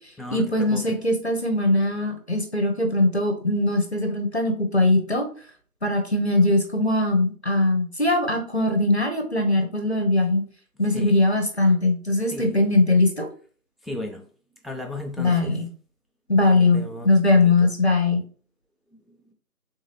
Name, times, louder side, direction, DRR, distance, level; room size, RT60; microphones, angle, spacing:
voice 1, 0.3-5.3 5.8-10.4 10.8-13.3 15.2-15.7 16.3-18.2, left 2 dB, 45° left, 0.6 m, -21 dB
voice 2, 13.8-14.2 14.6-15.5 16.5-17.7 19.1-19.3, left 1 dB, ahead, 0.4 m, -35 dB
3.5 x 3.2 x 2.9 m
figure-of-eight pair, 180°, 45 cm